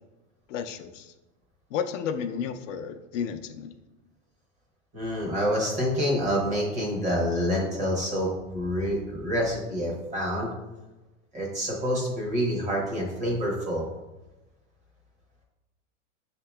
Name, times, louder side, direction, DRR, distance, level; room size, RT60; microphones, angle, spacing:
voice 1, 0.5-1.1 1.7-3.7, left 7 dB, 70° left, 7 dB, 0.5 m, -32 dB
voice 2, 4.9-10.5 11.3-13.8, equal, 20° right, -3 dB, 1.0 m, -27 dB
7.4 x 2.8 x 2.2 m, 1.1 s
supercardioid pair, 165°, 38 cm